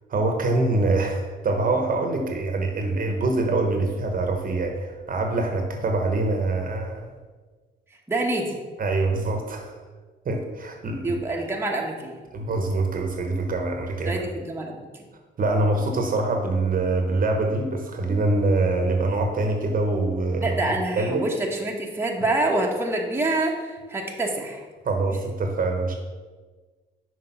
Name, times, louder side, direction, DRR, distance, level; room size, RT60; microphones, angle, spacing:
voice 1, 0.1-7.1 8.8-9.7 10.2-11.2 12.3-14.1 15.4-20.6 20.9-21.2 24.8-25.9, right 2 dB, 45° right, 3 dB, 1.1 m, -24 dB
voice 2, 8.1-8.7 11.0-12.2 14.0-15.0 20.4-24.6, right 2 dB, 10° right, -1 dB, 1.1 m, -26 dB
6.1 x 4.6 x 5.8 m, 1.4 s
cardioid pair, 90°, 20 cm